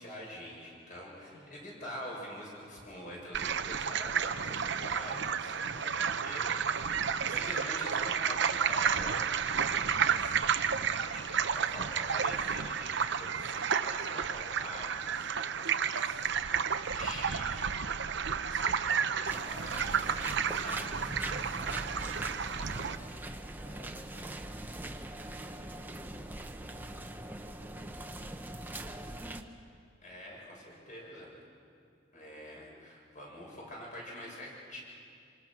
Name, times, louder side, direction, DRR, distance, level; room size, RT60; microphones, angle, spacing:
voice 1, 0.0-16.4 16.9-18.0 18.4-20.0 20.5-20.8 30.0-31.4 32.1-34.8, left 1 dB, 40° left, -3 dB, 7.4 m, -46 dB
voice 2, 1.2-1.6 6.2-6.7 19.8-20.1 20.4-29.7, equal, 85° left, -1 dB, 4.8 m, -57 dB
sound 1, 3.3-23.0, right 7 dB, 65° right, 0.8 m, -31 dB
sound 2, 19.2-29.4, right 1 dB, 10° right, 1.0 m, -42 dB
27.5 x 25.0 x 6.2 m, 2.3 s
head